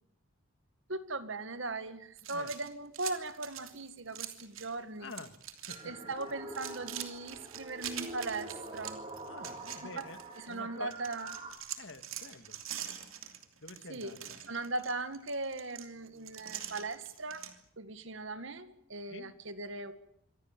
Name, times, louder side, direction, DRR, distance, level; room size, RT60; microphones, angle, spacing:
voice 1, 0.9-5.1 5.8-9.0 9.8-10.1 10.4-11.4 13.9-14.1 14.5-17.4 17.8-19.9, right 2 dB, 65° right, 12 dB, 1.8 m, -39 dB
sound 1, 2.2-4.7 5.0-5.8 6.1-10.5 10.9-17.5, right 10 dB, 80° right, 3.0 m, -44 dB
voice 2, 5.0-6.1 9.3-10.2 10.5-10.9 11.7-12.6 13.6-14.4 19.1-19.4, left 3 dB, 65° left, 11 dB, 1.8 m, -48 dB
sound 2, 5.7-11.5, right 2 dB, 30° right, 5.5 m, -46 dB
25.5 x 17.0 x 9.1 m, 0.73 s
head